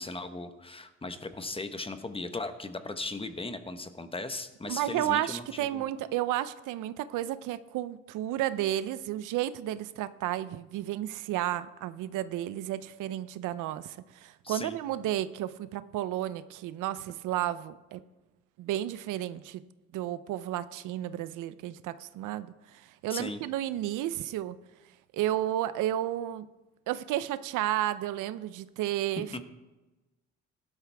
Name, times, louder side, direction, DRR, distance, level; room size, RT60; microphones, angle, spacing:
voice 1, 0.0-5.8 14.4-14.8 23.1-23.4 29.3-29.4, left 2 dB, 20° left, 9 dB, 1.1 m, -37 dB
voice 2, 4.7-18.0 18.6-19.6 19.9-24.6 25.1-26.5 26.9-29.4, right 13 dB, 90° right, 14 dB, 0.6 m, -32 dB
17.0 x 12.0 x 3.5 m, 1.1 s
cardioid pair, 90°, 30 cm